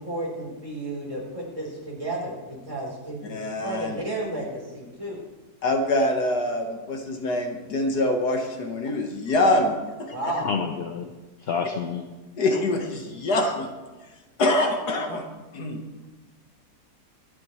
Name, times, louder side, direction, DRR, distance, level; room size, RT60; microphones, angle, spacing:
voice 1, 0.0-5.2 10.1-10.5, right 1 dB, 20° right, -3 dB, 3.8 m, -32 dB
voice 2, 3.3-4.0 5.6-10.3 12.4-13.7 14.4-15.3 15.5-15.8, left 1 dB, 75° left, 3 dB, 2.0 m, -25 dB
voice 3, 10.4-11.1 11.4-12.1, left 6 dB, 55° left, 5 dB, 0.7 m, -28 dB
25.5 x 9.7 x 3.2 m, 1.2 s
omnidirectional pair, 1.8 m